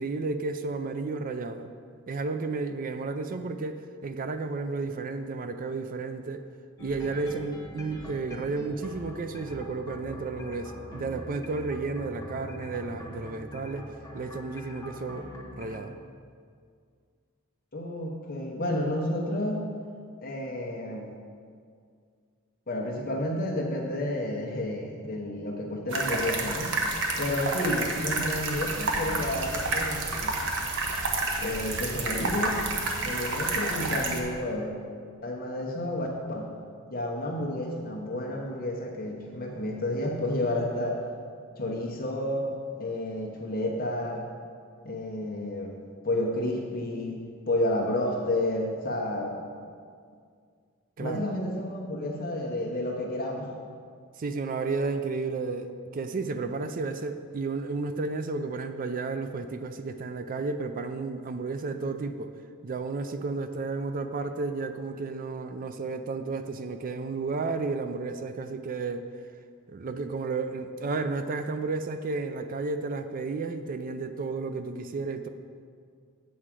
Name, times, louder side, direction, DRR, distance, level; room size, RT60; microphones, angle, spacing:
voice 1, 0.0-1.7 2.1-6.4 6.8-13.9 14.1-16.0 51.0-51.3 54.2-62.3 62.6-69.1 69.7-75.3, right 3 dB, 40° right, 8 dB, 0.4 m, -32 dB
sound 1, 6.8-15.8, left 1 dB, 15° left, 1.0 m, -43 dB
voice 2, 17.7-19.6 20.2-21.1 22.7-26.8 27.2-30.4 31.4-32.6 33.0-34.8 35.2-36.5 36.9-41.0 41.6-42.5 42.8-44.2 44.8-49.4 51.0-53.5, left 1 dB, 45° left, -1 dB, 1.0 m, -31 dB
sound 2, 25.9-34.2, right 2 dB, 65° right, 1.1 m, -29 dB
8.3 x 4.9 x 7.5 m, 2.2 s
head